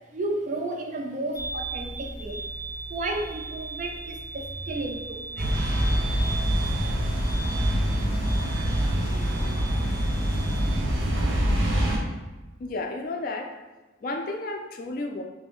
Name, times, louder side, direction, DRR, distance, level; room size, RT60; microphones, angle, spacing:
voice 1, 0.1-2.4 2.9-5.6, right 2 dB, 40° right, 3 dB, 0.3 m, -32 dB
sound 1, 1.4-10.7, right 3 dB, 20° left, 0.7 m, -38 dB
sound 2, 5.4-12.0, equal, 70° right, 0.8 m, -25 dB
voice 2, 12.6-13.5 14.0-15.2, left 2 dB, 45° left, 3 dB, 0.4 m, -32 dB
3.2 x 2.6 x 3.6 m, 1.2 s
head